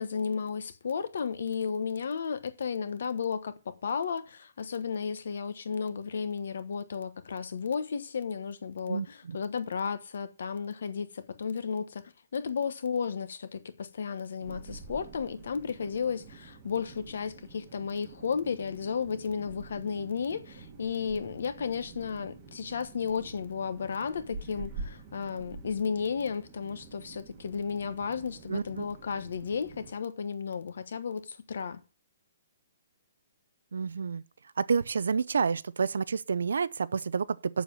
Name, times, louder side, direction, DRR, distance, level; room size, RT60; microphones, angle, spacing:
voice 1, 0.0-31.8, left 6 dB, 55° left, 1.1 m, -33 dB
voice 2, 8.9-9.4 28.5-28.8 33.7-34.2 34.6-37.6, right 5 dB, 75° right, 0.6 m, -29 dB
sound 1, 14.4-29.9, right 4 dB, 20° right, 1.3 m, -47 dB
7.3 x 7.0 x 7.4 m
hypercardioid pair, 180°, 0 cm